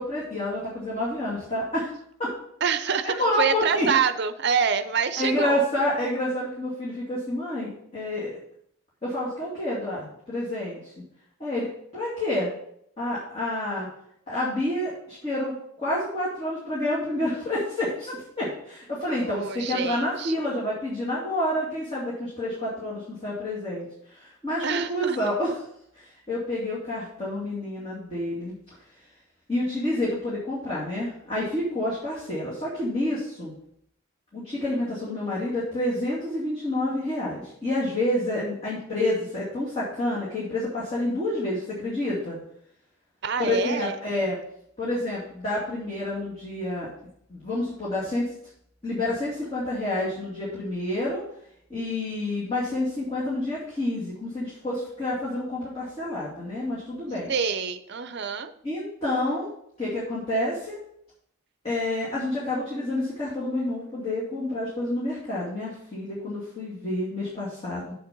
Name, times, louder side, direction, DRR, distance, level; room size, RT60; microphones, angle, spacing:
voice 1, 0.0-1.9 2.2-2.3 3.0-3.9 5.2-8.4 9.0-10.9 11.4-11.7 11.9-12.5 13.0-13.9 14.3-25.6 26.0-28.5 29.5-33.5 34.3-42.4 43.4-44.4 44.8-46.9 47.3-48.3 48.8-51.2 51.7-57.3 58.6-59.5 59.8-60.8 61.6-67.9, left 1 dB, 30° left, -8 dB, 2.6 m, -28 dB
voice 2, 2.6-5.6 19.3-20.3 24.6-25.2 43.2-44.0 57.3-58.5, right 6 dB, 50° right, 11 dB, 0.6 m, -26 dB
7.6 x 6.7 x 5.3 m, 0.70 s
head